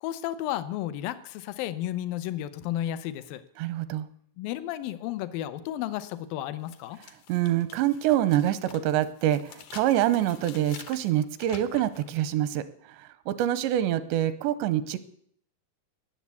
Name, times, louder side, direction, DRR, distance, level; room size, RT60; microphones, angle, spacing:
voice 1, 0.0-3.4 4.4-7.0, left 13 dB, 85° left, 13 dB, 2.0 m, -33 dB
voice 2, 3.6-4.1 7.3-15.0, right 12 dB, 85° right, 14 dB, 3.0 m, -26 dB
sound 1, 6.1-6.2 6.7-12.1, left 9 dB, 70° left, 2.2 m, -48 dB
19.5 x 7.4 x 8.3 m, 0.66 s
omnidirectional pair, 5.1 m